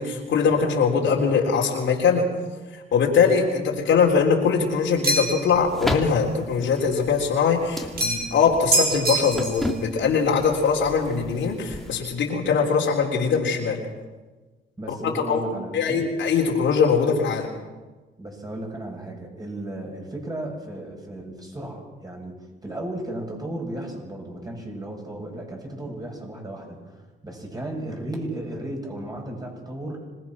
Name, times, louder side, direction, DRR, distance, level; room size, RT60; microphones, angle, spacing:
voice 1, 0.0-2.2 2.7-13.8 15.3-15.4 15.7-17.5, left 6 dB, 70° left, -1 dB, 3.8 m, -22 dB
sound 1, 5.0-5.5 8.0-8.4 8.7-9.7, right 2 dB, 50° right, 6.0 m, -24 dB
sound 2, 5.5-12.0, left 1 dB, ahead, 2.7 m, -34 dB
voice 2, 14.8-16.0 18.2-22.3 22.6-26.9 27.2-30.1, right 1 dB, 20° right, 0 dB, 7.7 m, -34 dB
26.0 x 20.0 x 6.2 m, 1.3 s
cardioid pair, 90°, 20 cm